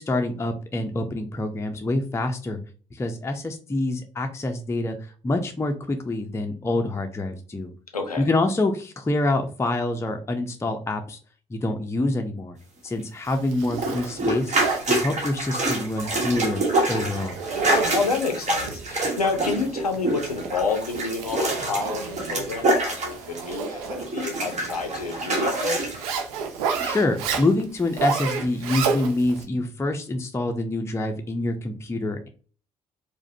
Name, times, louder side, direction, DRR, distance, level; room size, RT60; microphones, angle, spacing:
voice 1, 0.0-2.6 2.9-7.7 8.2-11.2 11.5-12.6 12.8-14.5 14.9-16.6 16.9-17.4 26.8-32.3, left 2 dB, 15° left, 5 dB, 0.5 m, -26 dB
voice 2, 7.9-8.3 17.9-25.8, left 4 dB, 90° left, 5 dB, 0.5 m, -29 dB
Zipper (clothing), 13.3-29.4, right 5 dB, 70° right, 0.5 m, -32 dB
sound 1, 13.7-23.7 24.0-26.2 26.7-26.8, right 2 dB, 40° right, 1.3 m, -26 dB
4.7 x 2.2 x 2.6 m, 0.38 s
figure-of-eight pair, 45°, 19 cm